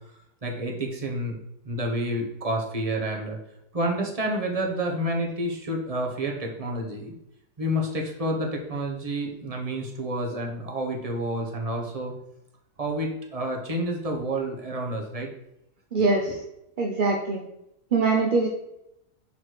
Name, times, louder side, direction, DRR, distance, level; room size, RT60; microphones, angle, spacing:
voice 1, 0.4-1.4 1.6-3.4 3.7-7.1 7.6-12.1 12.8-15.3 16.0-16.1, right 1 dB, 25° right, 1 dB, 1.1 m, -29 dB
voice 2, 15.9-16.4 16.8-17.4 17.9-18.5, right 3 dB, 45° right, 0 dB, 0.6 m, -23 dB
6.2 x 4.2 x 4.6 m, 0.83 s
omnidirectional pair, 1.6 m